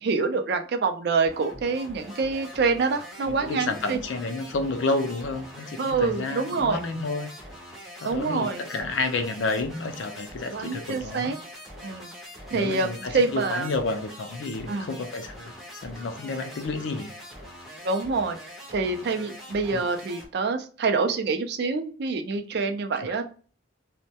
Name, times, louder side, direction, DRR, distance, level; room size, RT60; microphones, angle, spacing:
voice 1, 0.0-4.0 5.8-6.8 8.0-8.6 10.4-11.4 11.8-12.1 12.5-13.7 14.7-15.0 17.8-18.4 18.7-23.2, right 4 dB, 55° right, 6 dB, 0.3 m, -26 dB
sound 1, 1.2-20.3, equal, ahead, 0.5 m, -43 dB
voice 2, 3.3-7.3 8.0-11.3 12.5-17.1 19.7-19.8 23.0-23.1, left 3 dB, 70° left, 7 dB, 0.4 m, -30 dB
2.2 x 2.1 x 2.7 m, 0.39 s
head